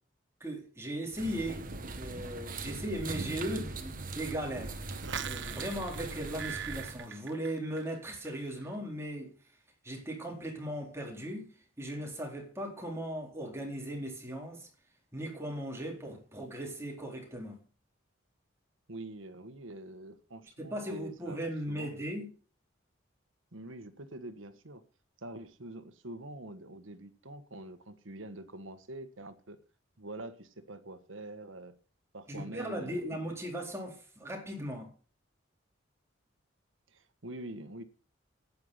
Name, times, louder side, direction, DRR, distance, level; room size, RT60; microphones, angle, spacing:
voice 1, 0.4-1.7 2.0-4.9 5.2-9.3 9.8-11.5 11.8-14.7 15.1-17.6 20.6-22.3 32.3-34.9, right 1 dB, 15° right, 4.2 m, -38 dB
sound 1, 1.1-7.1, right 3 dB, 45° right, 1.6 m, -40 dB
sound 2, 4.9-8.0 8.3-8.7, right 8 dB, 65° right, 1.0 m, -42 dB
voice 2, 18.9-21.9 23.5-24.8 25.2-29.6 30.0-31.7 32.1-33.4 36.9-37.8, right 1 dB, 85° right, 1.6 m, -45 dB
11.5 x 9.7 x 5.7 m
head